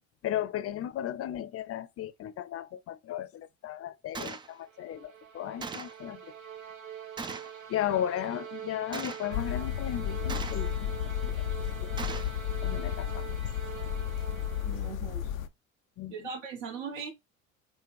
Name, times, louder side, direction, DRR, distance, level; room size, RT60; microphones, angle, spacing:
voice 1, 0.2-6.3 7.7-11.3 11.8-11.9 12.6-13.3 16.0-16.3, left 11 dB, 35° left, 0.6 m, -35 dB
Gunshot gunfire, 4.1-4.5 5.6-6.0 7.2-7.6 8.9-9.3 10.3-10.8 12.0-12.4, right 4 dB, 15° right, 0.3 m, -39 dB
sound 1, 4.5-15.1, right 8 dB, 85° right, 0.6 m, -44 dB
sound 2, 9.3-15.5, left 10 dB, 85° left, 0.5 m, -33 dB
voice 2, 14.6-15.2 16.1-17.1, right 5 dB, 65° right, 1.4 m, -39 dB
6.1 x 2.2 x 3.4 m
figure-of-eight pair, 60°, 39 cm